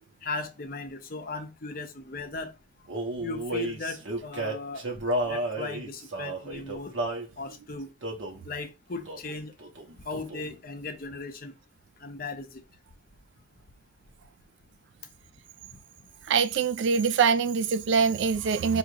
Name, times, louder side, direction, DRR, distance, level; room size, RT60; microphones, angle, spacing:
voice 1, 0.2-2.5 3.2-4.9 5.2-6.9 7.4-7.9 8.4-9.5 10.0-11.5 12.0-12.6, left 3 dB, 50° left, 0.7 m, -37 dB
Male singing, 2.9-7.3 8.0-8.4 9.1-9.3 9.6-10.6, right 1 dB, 85° right, 1.1 m, -32 dB
voice 2, 16.3-18.8, right 6 dB, 70° right, 0.3 m, -24 dB
5.0 x 2.5 x 2.9 m
head